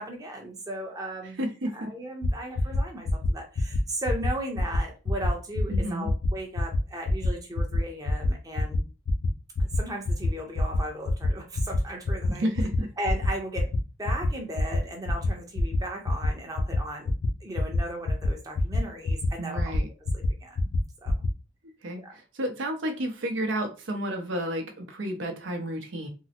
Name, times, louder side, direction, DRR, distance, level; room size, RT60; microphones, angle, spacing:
voice 1, 0.0-1.4 1.7-8.8 9.6-12.5 13.0-13.7 14.0-17.1 17.4-19.7 20.1-20.7 21.0-21.1 22.0-22.1, right 1 dB, 20° right, 1 dB, 0.7 m, -36 dB
voice 2, 1.4-1.9 5.7-6.1 12.3-12.9 19.4-19.9 21.8-26.1, right 1 dB, 65° right, 5 dB, 0.7 m, -31 dB
sound 1, 2.2-2.3 2.5-2.8 3.0-3.3 3.5-3.8 4.1-4.3 4.5-4.8 5.0-5.3 5.5-5.8 6.0-6.3 6.6-6.8 7.0-7.3 7.6-7.8 8.0-8.3 8.5-8.8 9.1-9.3 9.5-9.8 10.0-10.3 10.5-10.8 11.0-11.3 11.5-11.8 12.0-12.3 12.5-12.8 13.0-13.3 13.5-13.8 14.0-14.3 14.6-14.8 15.0-15.3 15.5-15.8 16.0-16.3 16.6-16.8 17.0-17.3 17.5-17.8 18.1-18.3 18.5-18.8 19.0-19.3 19.6-19.8 20.1-20.3 20.6-20.8 21.1-21.3, left 3 dB, 75° left, 0.4 m, -26 dB
3.6 x 2.0 x 2.8 m, 0.32 s
head